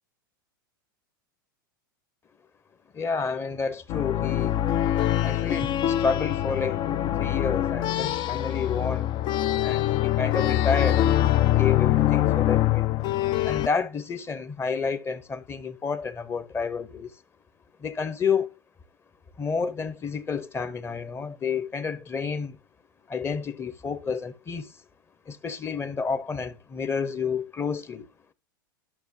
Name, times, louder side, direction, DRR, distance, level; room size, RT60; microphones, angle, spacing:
voice 1, 2.9-4.6 5.2-9.1 9.6-12.9 13.4-17.1 17.8-18.5 19.4-22.6 23.1-24.8 25.3-28.1, left 5 dB, 20° left, 1.0 m, -30 dB
sound 1, 3.9-13.7, left 13 dB, 40° left, 0.5 m, -24 dB
12.0 x 6.4 x 2.9 m
hypercardioid pair, 95°, 12 cm